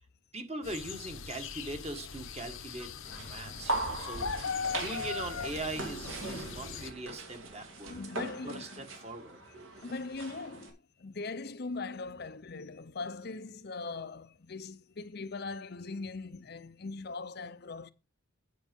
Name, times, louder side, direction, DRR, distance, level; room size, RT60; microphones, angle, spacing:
voice 1, 0.3-2.9 3.2-8.0 8.4-9.4, right 2 dB, 30° right, 1.6 m, -41 dB
sound 1, 0.6-6.9, left 6 dB, 70° left, 0.9 m, -39 dB
sound 2, 3.1-10.7, right 2 dB, 70° right, 2.5 m, -40 dB
voice 2, 7.8-8.9 9.8-17.9, left 3 dB, 50° left, 0.6 m, -40 dB
9.8 x 6.2 x 5.3 m
head